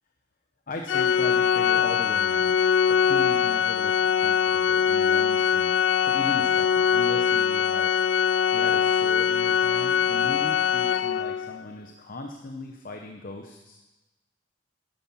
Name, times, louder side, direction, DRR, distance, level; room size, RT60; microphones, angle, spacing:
voice 1, 0.7-5.7 6.0-8.0 8.5-13.8, left 2 dB, 50° left, 3 dB, 0.9 m, -38 dB
Organ, 0.9-11.6, left 7 dB, 80° left, 0.3 m, -22 dB
11.5 x 10.5 x 5.6 m, 1.1 s
head